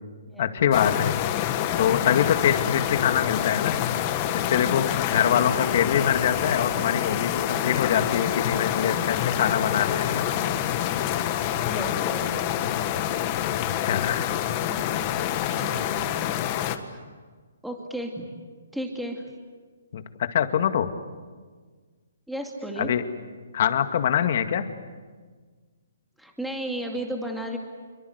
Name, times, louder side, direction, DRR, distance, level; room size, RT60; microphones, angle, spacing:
voice 1, 0.4-1.3 1.8-3.9 4.5-10.2 13.5-14.3 19.9-20.9 22.8-23.0 23.5-24.6, left 9 dB, 50° left, 8 dB, 2.1 m, -24 dB
sound 1, 0.7-16.8, left 11 dB, 30° left, 1.7 m, -27 dB
voice 2, 11.6-12.6 14.7-14.8 15.5-16.0 16.9-17.0 17.6-18.3 18.7-19.2 22.3-22.9 26.2-27.6, right 1 dB, ahead, 1 dB, 2.4 m, -33 dB
28.0 x 24.0 x 8.1 m, 1.5 s
hypercardioid pair, 160°, 0 cm